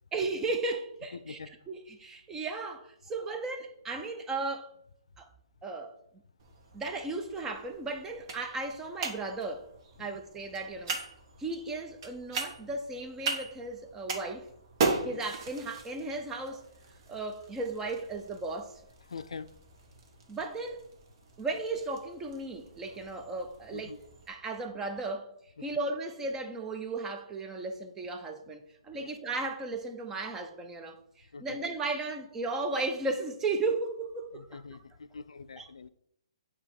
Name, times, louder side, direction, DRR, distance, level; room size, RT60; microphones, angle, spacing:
voice 1, 0.1-4.7 5.2-5.3 5.6-5.9 6.7-9.7 10.0-11.0 11.4-14.5 15.0-16.7 17.1-18.8 20.3-20.8 21.4-23.9 24.3-25.3 25.6-34.6 35.6-35.7, right 3 dB, 15° right, 0.6 m, -35 dB
voice 2, 1.1-1.5 10.0-10.1 14.9-15.2 19.1-19.5 23.7-24.0 29.0-29.1 31.3-31.6 34.3-35.9, left 5 dB, 85° left, 0.3 m, -44 dB
sound 1, 6.4-24.3, right 4 dB, 45° right, 1.1 m, -39 dB
7.4 x 2.9 x 4.7 m
hypercardioid pair, 140°, 3 cm